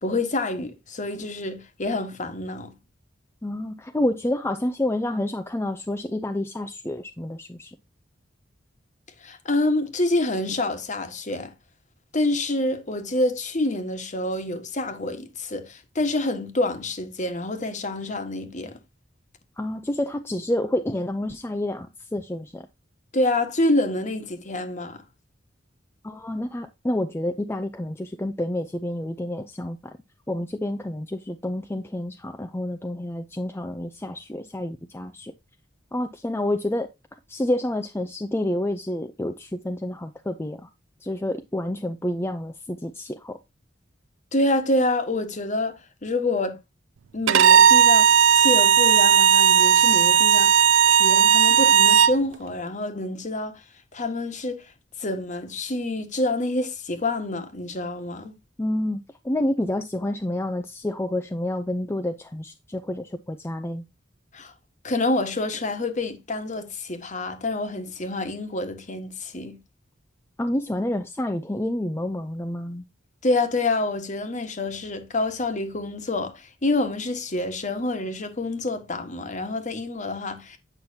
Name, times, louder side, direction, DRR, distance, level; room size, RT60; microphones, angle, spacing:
voice 1, 0.0-2.8 9.2-11.5 12.1-18.8 23.1-25.0 44.3-46.6 47.1-50.5 50.9-53.6 53.9-54.6 55.0-58.3 64.3-64.5 64.8-69.6 73.2-80.6, left 2 dB, 40° left, 1.4 m, -27 dB
voice 2, 3.4-7.7 19.6-22.7 26.0-30.0 30.3-35.3 35.9-36.9 37.3-40.7 41.0-43.4 58.6-63.8 70.4-72.8, left 1 dB, 15° left, 0.5 m, -29 dB
Bowed string instrument, 47.3-52.2, right 8 dB, 80° right, 0.4 m, -16 dB
8.7 x 6.0 x 2.7 m
head